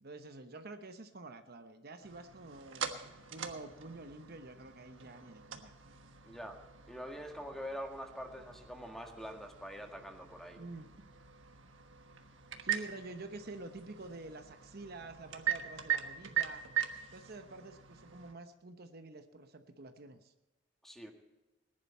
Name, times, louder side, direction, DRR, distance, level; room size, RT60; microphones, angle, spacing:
voice 1, 0.0-5.7 10.6-11.1 12.6-16.6 17.1-20.3, right 2 dB, 55° right, 8 dB, 0.9 m, -48 dB
sound 1, 2.0-18.3, right 10 dB, 85° right, 1.4 m, -42 dB
voice 2, 6.2-6.6 6.9-10.6 20.8-21.1, equal, ahead, 3 dB, 1.6 m, -44 dB
19.5 x 11.0 x 4.3 m, 1.1 s
head